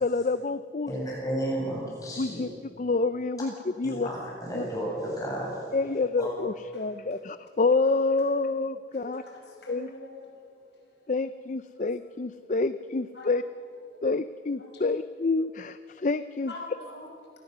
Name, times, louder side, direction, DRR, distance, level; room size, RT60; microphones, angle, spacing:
voice 1, 0.0-0.9 2.2-2.5 2.8-4.1 4.5-4.6 5.7-9.2 9.7-9.9 11.1-13.4 14.0-16.5, left 3 dB, 45° left, 13 dB, 0.5 m, -28 dB
voice 2, 0.9-2.5 3.8-5.5 6.2-6.3, right 1 dB, 20° left, -3 dB, 7.7 m, -32 dB
voice 3, 8.9-10.2 13.1-13.3 14.6-14.8 16.5-17.4, left 2 dB, 75° left, 1 dB, 5.5 m, -44 dB
28.5 x 19.0 x 6.8 m, 2.4 s
head